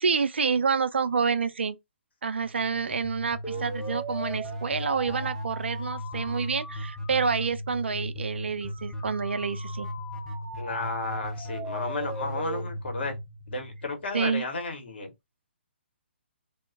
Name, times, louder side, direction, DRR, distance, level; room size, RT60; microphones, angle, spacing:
voice 1, 0.0-1.8 2.2-9.9 14.1-14.4, right 5 dB, 70° right, 0.4 m, -28 dB
sound 1, 2.4-14.2, equal, 5° left, 0.7 m, -36 dB
voice 2, 10.6-13.1 13.5-15.1, left 3 dB, 60° left, 1.1 m, -33 dB
2.3 x 2.1 x 3.7 m
figure-of-eight pair, 135°, 6 cm